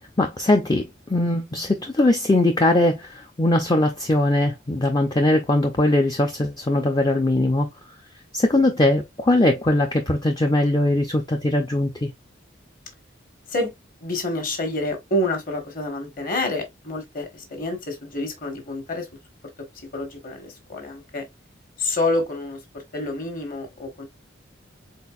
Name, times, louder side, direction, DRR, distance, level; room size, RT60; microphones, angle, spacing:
voice 1, 0.2-7.7 8.3-12.1, left 1 dB, 20° left, 0.5 m, -20 dB
voice 2, 14.0-19.1 19.9-21.2 21.8-24.1, left 2 dB, 45° left, 1.4 m, -28 dB
4.4 x 3.8 x 2.4 m
head